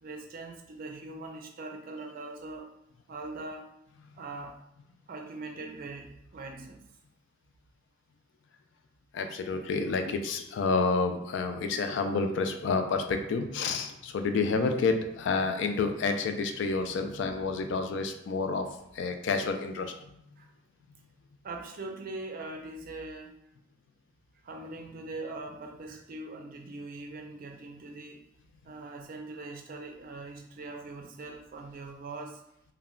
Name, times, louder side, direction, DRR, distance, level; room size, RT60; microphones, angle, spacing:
voice 1, 0.0-2.7 3.1-3.7 4.1-4.6 5.1-6.8 16.7-17.0 17.6-17.7 20.4-20.5 21.4-23.4 24.4-28.2 28.6-32.4, right 2 dB, 45° right, 2 dB, 0.4 m, -41 dB
voice 2, 9.1-18.7 18.9-19.9, left 4 dB, 65° left, 6 dB, 0.3 m, -29 dB
2.2 x 2.1 x 3.6 m, 0.77 s
head